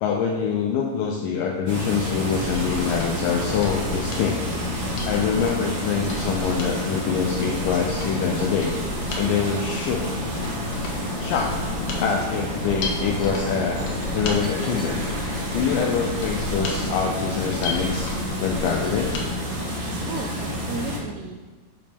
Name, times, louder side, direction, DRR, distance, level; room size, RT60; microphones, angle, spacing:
voice 1, 0.0-4.4 5.0-8.8 9.1-10.1 11.2-13.8 14.1-15.0 15.5-18.1 18.4-19.2, left 6 dB, 90° left, 2 dB, 1.9 m, -25 dB
sound 1, 1.7-21.0, left 1 dB, 40° right, 1.7 m, -29 dB
Mechanisms, 2.4-19.3 19.6-19.7, left 3 dB, 65° left, 1.9 m, -35 dB
voice 2, 20.0-21.5, right 4 dB, 85° right, 3 dB, 2.6 m, -35 dB
9.1 x 5.4 x 5.3 m, 1.3 s
omnidirectional pair, 4.7 m